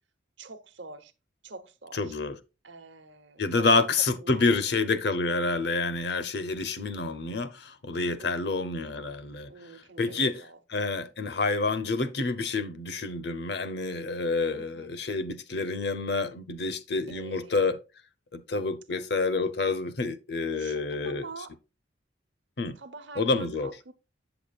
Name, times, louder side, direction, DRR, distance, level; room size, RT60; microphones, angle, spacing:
voice 1, 0.4-1.1 1.4-2.1 2.6-4.5 8.2-8.7 9.5-10.6 14.5-14.9 17.1-17.6 20.5-21.5 22.8-23.9, right 3 dB, 70° right, 1.0 m, -46 dB
voice 2, 1.9-2.4 3.4-9.5 10.0-10.4 10.7-17.8 18.3-21.2 22.6-22.8 23.2-23.7, left 3 dB, 55° left, 0.7 m, -28 dB
8.3 x 6.9 x 2.4 m
head